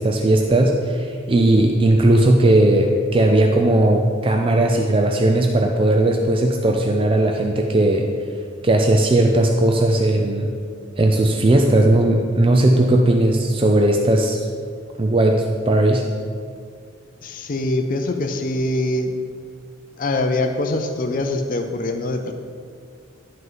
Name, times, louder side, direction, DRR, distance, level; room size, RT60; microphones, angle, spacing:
voice 1, 0.0-8.1 8.6-10.5 11.0-14.5 15.0-16.1, right 1 dB, 25° right, 2 dB, 0.4 m, -17 dB
voice 2, 17.2-19.1 20.0-22.3, left 2 dB, 40° left, 5 dB, 0.5 m, -23 dB
11.0 x 5.5 x 3.9 m, 2.1 s
head